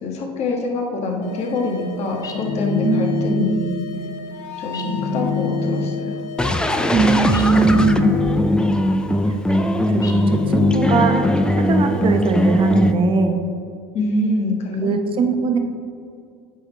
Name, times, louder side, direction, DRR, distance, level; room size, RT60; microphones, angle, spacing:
voice 1, 0.0-3.8 4.6-6.2 13.9-14.9, left 2 dB, 45° left, 1 dB, 1.5 m, -25 dB
sound 1, 1.2-7.9, left 3 dB, 90° left, 0.9 m, -36 dB
sound 2, 2.2-3.6 4.7-6.1 7.3-8.7 10.0-11.4, left 5 dB, 25° left, 0.9 m, -24 dB
voice 2, 2.8-3.7 6.9-8.1 9.9-13.4 14.8-15.6, right 4 dB, 35° right, 5 dB, 0.9 m, -20 dB
sound 3, 6.4-12.9, left 1 dB, 5° left, 0.4 m, -20 dB
9.8 x 6.3 x 3.3 m, 2.4 s
supercardioid pair, 120°, 15 cm